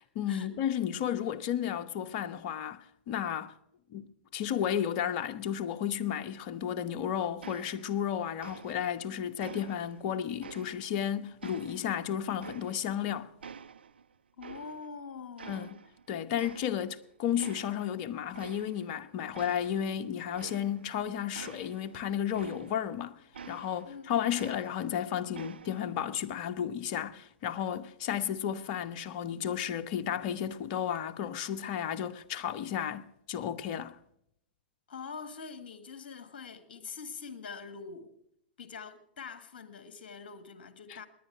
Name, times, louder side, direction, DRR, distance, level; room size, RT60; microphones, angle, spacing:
voice 1, 0.2-3.6 3.9-13.3 15.5-15.8 16.1-23.2 23.5-34.0 40.9-41.0, left 9 dB, 45° left, 0.9 m, -33 dB
sound 1, 7.4-8.1 8.4-9.0 9.4-11.0 11.4-13.1 13.4-15.0 15.4-16.1 16.4-17.0 17.4-17.9 18.3-19.0 19.3-23.0 23.3-25.0 25.3-26.0, right 6 dB, 75° right, 0.6 m, -48 dB
voice 2, 14.4-15.7 22.4-22.8 23.9-24.1 34.9-38.1 38.6-41.1, left 5 dB, 60° left, 1.6 m, -44 dB
20.0 x 10.0 x 6.1 m
figure-of-eight pair, 105°, 6 cm